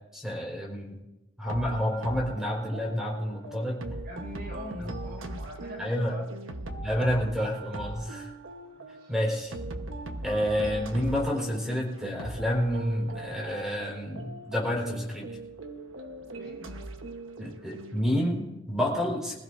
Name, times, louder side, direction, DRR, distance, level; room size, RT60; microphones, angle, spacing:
voice 1, 0.1-1.0 1.4-3.8 5.8-6.1 6.8-8.3 9.1-9.5 10.2-15.3 17.4-19.3, equal, 5° right, -2 dB, 4.6 m, -29 dB
sound 1, 1.4-18.1, right 2 dB, 75° right, 1.2 m, -40 dB
voice 2, 4.0-6.3 6.6-7.1 8.7-9.2 16.4-16.7, equal, 50° right, -2 dB, 6.0 m, -43 dB
25.5 x 15.5 x 2.7 m, 1.0 s
head